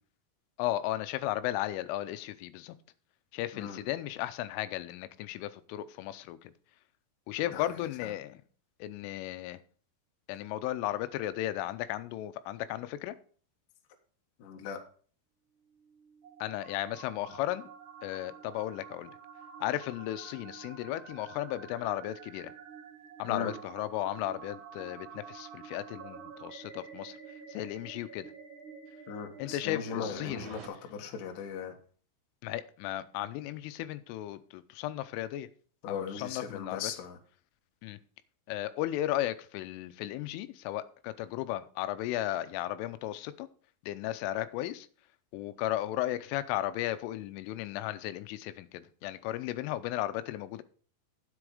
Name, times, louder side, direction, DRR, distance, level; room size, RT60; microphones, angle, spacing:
voice 1, 0.6-2.8 3.3-6.5 7.3-8.4 8.8-9.6 10.3-13.2 16.4-17.6 18.0-19.2 19.6-22.5 23.2-27.2 27.5-28.3 29.4-30.4 32.4-35.5 35.9-36.9 37.8-38.0 38.5-43.5 43.8-44.9 45.3-50.6, left 14 dB, 90° left, 3.2 m, -35 dB
voice 2, 7.5-8.1 14.4-14.8 23.2-23.5 29.1-31.8 35.8-37.2, left 6 dB, 60° left, 2.3 m, -38 dB
sound 1, 15.6-30.7, right 6 dB, 45° right, 2.2 m, -49 dB
9.8 x 7.8 x 4.9 m
omnidirectional pair, 5.6 m